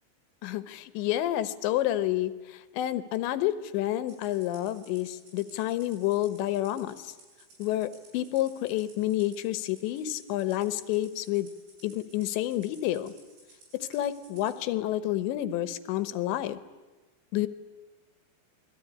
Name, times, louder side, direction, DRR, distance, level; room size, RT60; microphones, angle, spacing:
voice 1, 0.4-7.1 7.6-11.5 11.8-13.1 13.7-16.6 17.3-17.5, left 14 dB, 80° left, 13 dB, 3.2 m, -29 dB
Rattle (instrument), 4.1-14.6, right 2 dB, 85° right, 9.4 m, -56 dB
28.0 x 21.0 x 9.9 m, 1.2 s
omnidirectional pair, 5.1 m